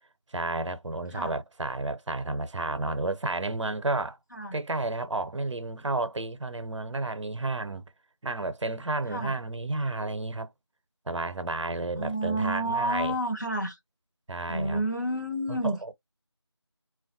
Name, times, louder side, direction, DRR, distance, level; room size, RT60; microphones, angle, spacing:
voice 1, 0.3-4.2 4.5-7.8 8.2-10.5 11.1-13.1 14.3-14.8 15.5-15.9, right 2 dB, 90° right, 0.5 m, -31 dB
voice 2, 12.0-13.8 14.5-15.8, right 1 dB, 40° left, 0.6 m, -30 dB
2.2 x 2.1 x 2.6 m
figure-of-eight pair, 180°, 15 cm